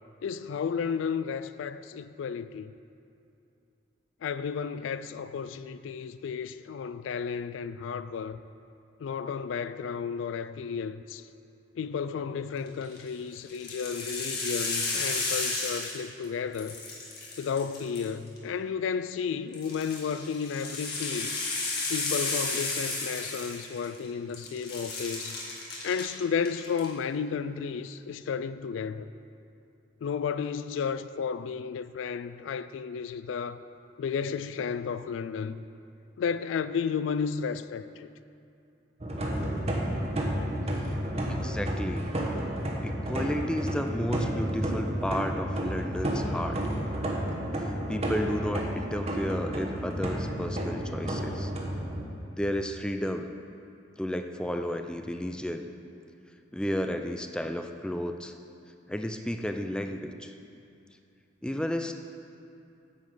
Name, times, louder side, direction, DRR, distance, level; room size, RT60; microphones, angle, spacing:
voice 1, 0.2-2.7 4.2-8.4 9.0-11.2 11.8-16.8 17.4-21.3 21.9-25.4 25.8-29.1 30.0-33.6 34.0-35.6 36.2-38.1, left 6 dB, 90° left, 0.3 m, -33 dB
sound 1, 12.7-13.0 13.5-16.2 16.5-18.4 19.5-24.1 24.3-26.0 26.4-26.9, left 3 dB, 55° left, 1.8 m, -33 dB
sound 2, 39.0-52.0, equal, 35° right, 1.1 m, -31 dB
voice 2, 41.3-42.1 42.8-46.6 47.9-51.5 52.3-53.3 54.0-55.7 56.5-58.3 58.9-60.3 61.4-61.9, equal, 5° left, 0.4 m, -32 dB
9.6 x 7.2 x 4.9 m
head